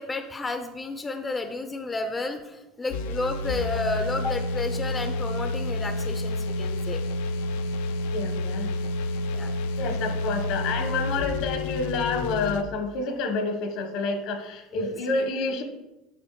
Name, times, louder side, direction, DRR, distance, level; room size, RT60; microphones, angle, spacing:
voice 1, 0.0-7.0 9.3-9.5 14.7-14.9, left 2 dB, 15° left, 7 dB, 0.5 m, -31 dB
sound 1, 2.9-12.6, left 2 dB, 85° left, 0.4 m, -29 dB
voice 2, 8.1-8.7 9.8-15.6, left 3 dB, 65° left, 6 dB, 1.0 m, -28 dB
8.2 x 5.2 x 3.1 m, 1.0 s
supercardioid pair, 125°, 0 cm